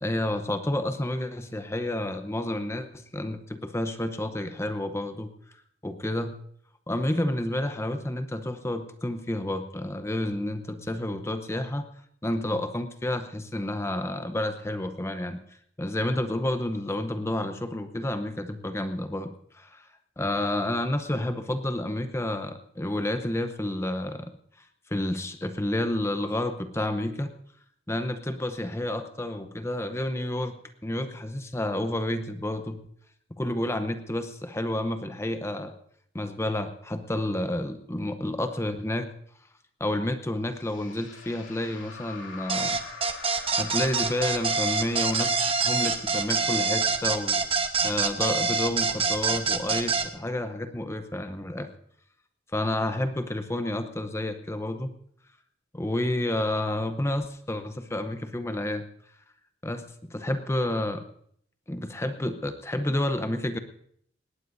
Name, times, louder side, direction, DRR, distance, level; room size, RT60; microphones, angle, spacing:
voice 1, 0.0-5.3 5.8-6.4 6.9-11.9 12.2-15.4 15.8-19.9 20.2-24.3 24.9-27.3 27.9-30.6 30.8-32.8 33.3-35.7 36.1-39.1 39.8-42.8 43.6-47.4 47.8-51.7 52.5-54.9 55.7-58.8 59.6-61.0 61.7-63.6, left 1 dB, 15° left, 8 dB, 0.8 m, -30 dB
sound 1, 40.5-47.8, left 4 dB, 80° left, 2.8 m, -45 dB
sound 2, 42.5-50.1, right 4 dB, 30° right, 1.1 m, -25 dB
19.5 x 17.5 x 2.7 m, 0.66 s
head